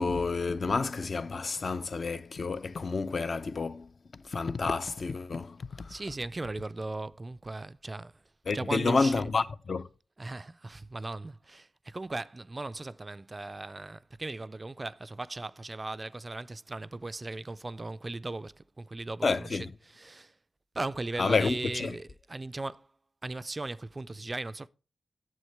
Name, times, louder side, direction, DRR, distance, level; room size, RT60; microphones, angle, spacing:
voice 1, 0.0-3.9 4.2-5.9 8.5-9.9 19.2-19.7 21.2-22.0, left 4 dB, 55° left, 0.5 m, -29 dB
voice 2, 5.9-8.2 8.5-9.3 10.2-20.3 20.7-22.9 23.2-24.7, right 2 dB, 30° right, 0.3 m, -38 dB
9.3 x 7.3 x 3.2 m
cardioid pair, 75°, 0 cm